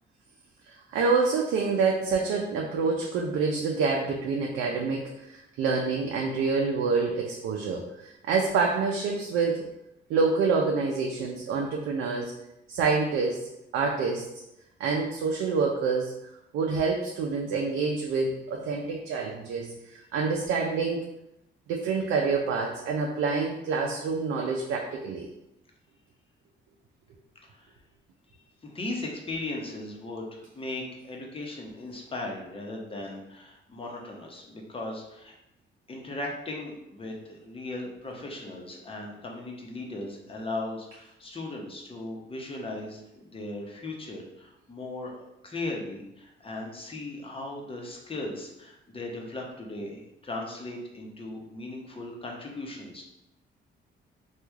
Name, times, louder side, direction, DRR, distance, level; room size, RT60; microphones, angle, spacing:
voice 1, 0.6-9.6 10.1-12.3 12.7-14.3 14.8-16.1 16.5-21.0 21.7-25.3, right 4 dB, 85° right, 0 dB, 0.4 m, -27 dB
voice 2, 27.4-27.7 28.6-35.3 35.9-53.0, left 2 dB, 25° left, 0 dB, 0.8 m, -37 dB
3.1 x 2.3 x 3.5 m, 0.88 s
cardioid pair, 90°, 20 cm